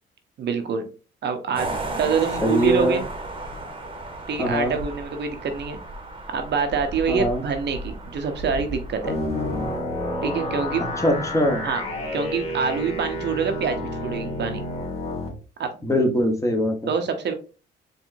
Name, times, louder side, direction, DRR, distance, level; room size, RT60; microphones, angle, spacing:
voice 1, 0.4-0.9 1.2-1.7 2.0-3.0 4.3-5.8 6.3-9.2 10.2-10.8 11.6-11.8 12.1-14.6 15.6-15.7 16.9-17.3, right 6 dB, 60° right, 6 dB, 0.8 m, -26 dB
sound 1, 1.5-9.8, right 2 dB, 25° right, 1.1 m, -34 dB
voice 2, 2.4-3.0 4.4-4.7 7.1-7.4 11.0-11.6 15.8-16.9, equal, 15° left, 2 dB, 1.3 m, -22 dB
sound 2, 9.0-15.3, left 1 dB, 30° left, 2.0 m, -29 dB
4.5 x 3.2 x 2.7 m, 0.35 s
cardioid pair, 90°, 20 cm